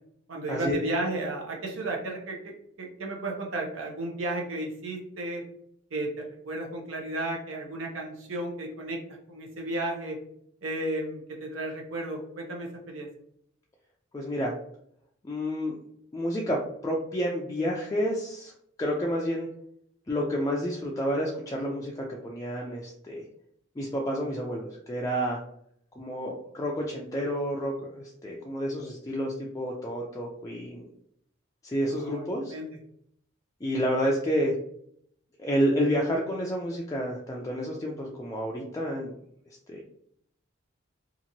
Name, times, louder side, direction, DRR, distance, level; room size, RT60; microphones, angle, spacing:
voice 1, 0.3-2.4 2.8-5.4 5.9-9.0 9.3-10.2 10.6-13.1 32.0-32.7, right 2 dB, 80° right, 0 dB, 0.8 m, -33 dB
voice 2, 14.1-14.5 15.2-15.8 16.1-18.5 18.8-19.5 20.1-23.2 23.8-25.4 26.0-30.9 31.6-32.5 33.6-34.5 35.4-39.2 39.7-39.9, equal, 15° left, -2 dB, 0.3 m, -29 dB
2.9 x 2.5 x 2.7 m, 0.70 s
head